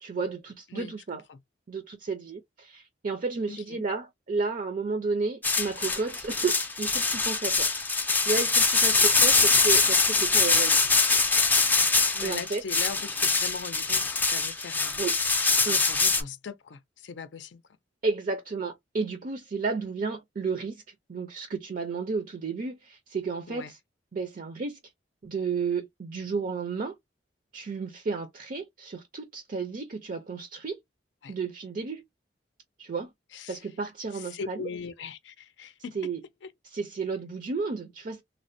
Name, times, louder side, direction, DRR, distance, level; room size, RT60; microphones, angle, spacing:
voice 1, 0.0-1.2 1.7-7.7 8.3-10.8 12.2-12.6 15.0-15.2 15.7-15.8 18.0-20.8 21.1-23.8 24.1-24.8 25.2-27.0 27.5-30.8 31.3-32.0 32.8-33.1 33.5-34.7 35.9-36.2 36.7-38.2, right 4 dB, 50° right, 0.5 m, -32 dB
voice 2, 3.5-3.8 9.6-9.7 12.1-15.1 15.7-17.6 23.5-23.7 31.2-31.3 33.3-33.6 34.1-36.1, left 5 dB, 85° left, 0.5 m, -40 dB
sound 1, 5.4-16.2, left 4 dB, 10° left, 0.4 m, -23 dB
3.2 x 2.1 x 2.5 m
head